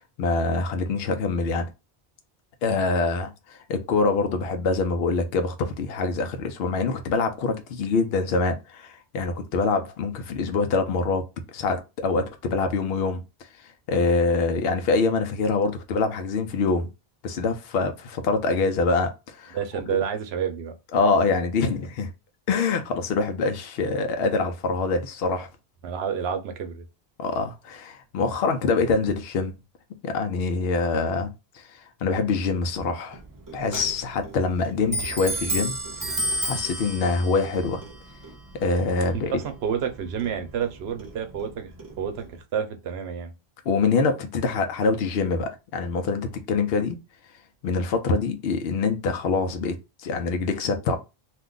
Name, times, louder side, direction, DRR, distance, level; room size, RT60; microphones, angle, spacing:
voice 1, 0.2-1.7 2.6-11.2 11.5-13.2 13.9-16.9 17.2-19.6 20.9-22.1 22.5-25.5 27.2-29.6 30.0-33.2 33.5-35.8 36.0-37.8 38.6-39.3 43.7-47.0 47.6-49.8 50.0-51.0, left 4 dB, 75° left, 0.8 m, -25 dB
voice 2, 19.5-20.7 25.8-26.9 39.1-41.7 42.0-43.3, right 7 dB, 90° right, 0.9 m, -29 dB
Clock, 33.1-42.4, right 1 dB, 25° right, 0.5 m, -34 dB
2.5 x 2.2 x 3.7 m
omnidirectional pair, 1.0 m